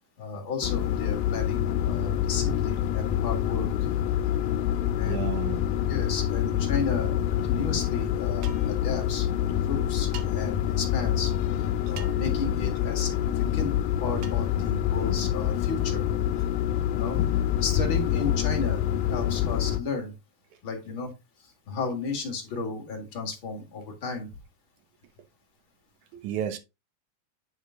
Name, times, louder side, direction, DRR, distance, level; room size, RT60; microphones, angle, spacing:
voice 1, 0.2-3.7 5.0-5.3 5.8-11.3 11.6-16.0 16.9-17.2 17.6-20.1 20.6-21.1 21.4-24.3, left 4 dB, 40° left, 2.1 m, -33 dB
sound 1, 0.6-19.8, left 11 dB, 85° left, 2.4 m, -26 dB
voice 2, 5.1-5.7 26.1-26.6, right 10 dB, 70° right, 2.1 m, -32 dB
sound 2, 8.4-8.8 10.1-10.3 12.0-12.3 14.2-14.4, right 9 dB, 85° right, 1.5 m, -43 dB
9.5 x 3.6 x 3.8 m
omnidirectional pair, 4.3 m